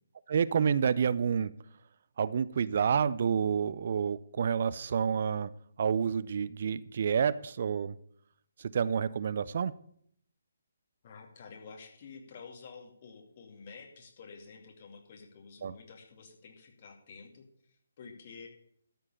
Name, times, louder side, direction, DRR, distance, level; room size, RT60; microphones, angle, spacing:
voice 1, 0.3-1.5 2.2-5.5 5.8-7.9 8.6-9.7 15.6-15.7, right 7 dB, 50° right, 16 dB, 0.4 m, -29 dB
voice 2, 11.0-18.5, left 5 dB, 45° left, 2 dB, 2.4 m, -50 dB
13.0 x 4.5 x 8.4 m, 0.66 s
figure-of-eight pair, 140°, 0 cm